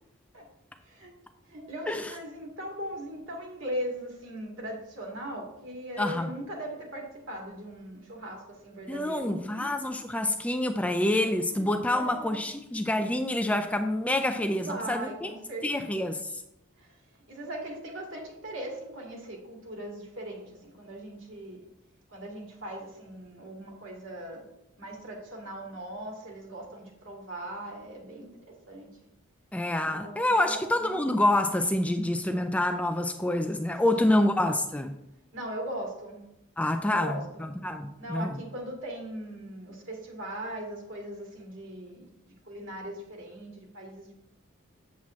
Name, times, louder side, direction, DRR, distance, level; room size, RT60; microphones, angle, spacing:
voice 1, 0.8-1.2 1.4-9.7 11.4-12.4 14.4-15.9 16.8-17.0 17.3-21.6 22.1-24.4 24.8-28.3 28.7-28.9 29.8-30.9 33.9-34.3 35.3-36.2 36.9-37.5 38.0-44.1, right 1 dB, 65° right, -1 dB, 2.3 m, -39 dB
voice 2, 6.0-6.3 8.9-15.3 15.6-16.4 29.5-35.0 36.6-38.4, left 1 dB, 5° left, 6 dB, 0.3 m, -27 dB
8.3 x 7.5 x 3.1 m, 0.84 s
head